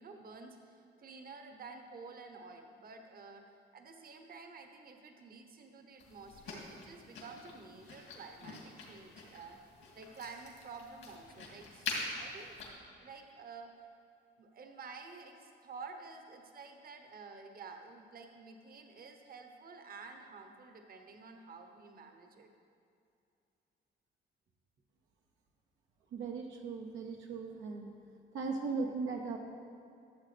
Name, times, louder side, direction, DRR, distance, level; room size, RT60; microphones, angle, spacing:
voice 1, 0.0-3.4 3.7-9.6 9.9-12.5 13.0-13.7 14.4-22.5, right 4 dB, 50° right, 5 dB, 1.0 m, -50 dB
sound 1, 6.0-12.7, left 3 dB, 75° left, 2.3 m, -45 dB
voice 2, 26.1-27.9 28.3-29.4, right 4 dB, 80° right, 1 dB, 0.8 m, -38 dB
12.5 x 7.3 x 3.3 m, 2.5 s
cardioid pair, 90°, 20 cm